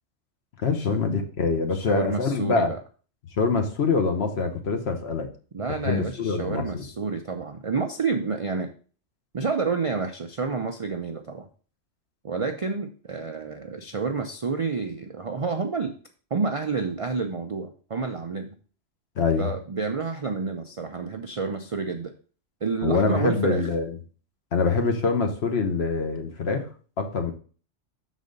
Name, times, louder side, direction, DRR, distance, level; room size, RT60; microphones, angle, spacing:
voice 1, 0.6-2.7 3.4-5.3 5.8-6.8 19.2-19.5 22.8-24.0 24.5-26.7 27.0-27.3, left 4 dB, 60° left, 6 dB, 1.1 m, -24 dB
voice 2, 1.7-2.8 5.5-8.7 9.3-11.5 12.2-15.9 16.3-18.6 19.4-22.1 22.6-23.7, right 4 dB, 50° right, 5 dB, 0.4 m, -29 dB
6.3 x 4.1 x 5.2 m, 0.40 s
omnidirectional pair, 1.3 m